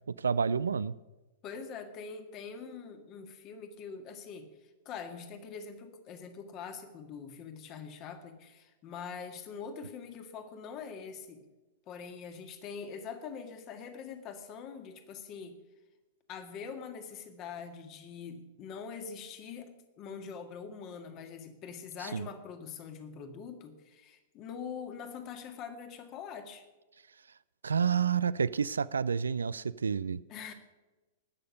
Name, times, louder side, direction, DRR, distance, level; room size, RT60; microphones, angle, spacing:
voice 1, 0.1-1.0 22.1-22.3 27.6-30.2, right 6 dB, 80° right, 18 dB, 0.3 m, -29 dB
voice 2, 1.4-11.5 11.9-15.6 16.3-26.7 30.3-30.5, left 6 dB, 40° left, 7 dB, 1.8 m, -44 dB
19.5 x 6.8 x 5.3 m, 1.2 s
figure-of-eight pair, 100°, 0 cm